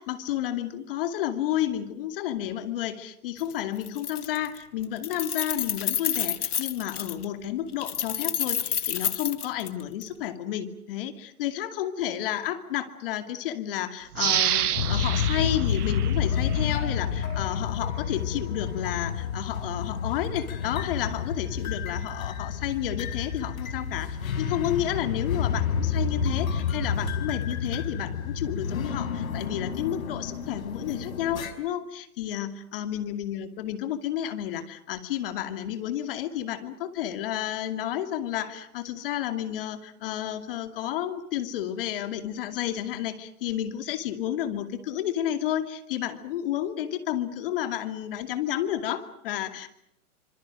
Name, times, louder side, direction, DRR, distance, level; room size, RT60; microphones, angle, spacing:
voice 1, 0.0-49.7, left 11 dB, 40° left, 9 dB, 2.6 m, -31 dB
Keys jangling, 3.4-3.5 3.8-4.6 4.8-7.2 7.8-10.1, left 9 dB, 85° left, 2.0 m, -29 dB
sound 1, 14.1-16.8 17.3-17.4, right 11 dB, 85° right, 0.9 m, -28 dB
sound 2, 14.8-31.5, left 7 dB, 65° left, 5.3 m, -29 dB
27.5 x 26.0 x 6.3 m, 0.72 s
hypercardioid pair, 165°, 44 cm